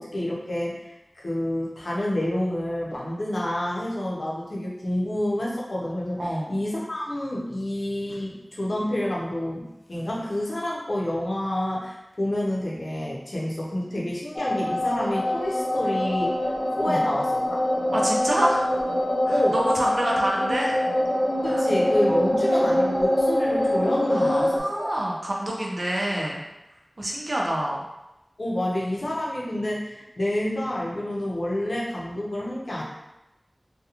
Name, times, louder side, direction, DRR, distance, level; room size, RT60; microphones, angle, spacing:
voice 1, 0.0-16.4 16.7-17.6 19.3-19.5 21.4-24.9 28.4-32.8, left 1 dB, 80° left, -5 dB, 0.6 m, -28 dB
voice 2, 6.2-6.6 16.8-17.0 17.9-18.7 19.3-20.8 21.4-21.7 22.1-22.3 24.0-26.4 27.0-27.8, right 1 dB, 70° right, -2 dB, 0.5 m, -27 dB
sound 1, 14.4-24.6, left 1 dB, 30° left, 0.3 m, -24 dB
2.8 x 2.2 x 2.4 m, 0.97 s
wide cardioid pair, 55°, 0 cm